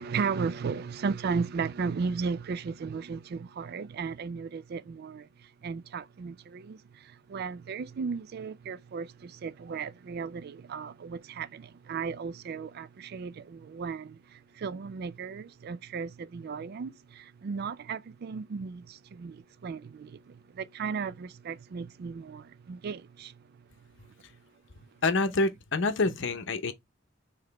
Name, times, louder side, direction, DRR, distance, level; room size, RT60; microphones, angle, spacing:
voice 1, 0.0-5.3 5.6-23.3, right 5 dB, 55° right, 0.3 m, -35 dB
voice 2, 25.0-26.7, left 3 dB, 65° left, 0.8 m, -27 dB
4.9 x 3.1 x 3.3 m
head